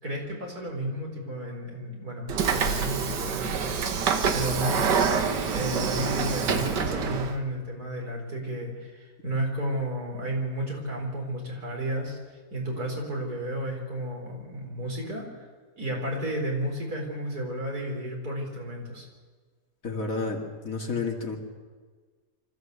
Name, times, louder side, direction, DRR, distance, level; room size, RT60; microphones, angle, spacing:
voice 1, 0.0-4.9 5.5-15.5 15.8-19.0, right 1 dB, 65° right, 0 dB, 4.9 m, -32 dB
Train / Sliding door, 2.3-7.3, right 6 dB, 90° right, 2.0 m, -26 dB
voice 2, 19.8-21.4, left 4 dB, 55° left, 2 dB, 2.6 m, -31 dB
25.0 x 14.5 x 8.2 m, 1.5 s
omnidirectional pair, 1.8 m